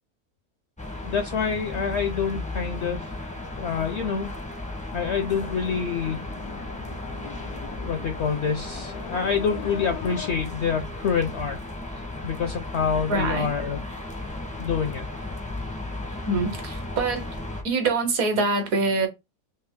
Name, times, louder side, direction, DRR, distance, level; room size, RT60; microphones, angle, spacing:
sound 1, 0.8-17.6, left 2 dB, 10° left, 0.3 m, -35 dB
voice 1, 1.0-3.1 3.6-4.3 4.9-6.2 7.8-11.6 12.0-13.8 14.6-15.0, left 6 dB, 70° left, 0.6 m, -27 dB
sound 2, 5.3-10.3, left 8 dB, 90° left, 1.2 m, -41 dB
voice 2, 13.1-13.5 16.2-17.2 17.6-19.1, right 3 dB, 65° right, 1.4 m, -24 dB
3.4 x 2.8 x 3.5 m
omnidirectional pair, 1.6 m